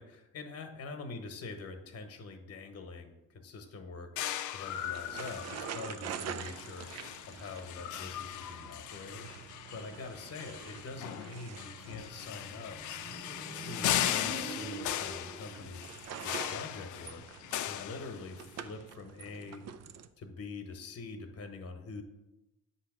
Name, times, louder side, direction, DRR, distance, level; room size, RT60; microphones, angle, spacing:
voice 1, 0.0-4.1 4.5-6.9 7.3-9.3 9.7-12.8 13.5-15.8 16.2-17.2 17.6-19.7 20.2-22.0, left 3 dB, 55° left, 6 dB, 1.0 m, -44 dB
sound 1, 4.2-18.6, left 12 dB, 75° left, 0.5 m, -38 dB
sound 2, 4.7-20.1, right 7 dB, 60° right, 0.5 m, -47 dB
Motorcycle, 12.3-15.8, right 3 dB, 25° right, 1.0 m, -45 dB
7.8 x 2.9 x 6.0 m, 0.96 s
cardioid pair, 90°, 30 cm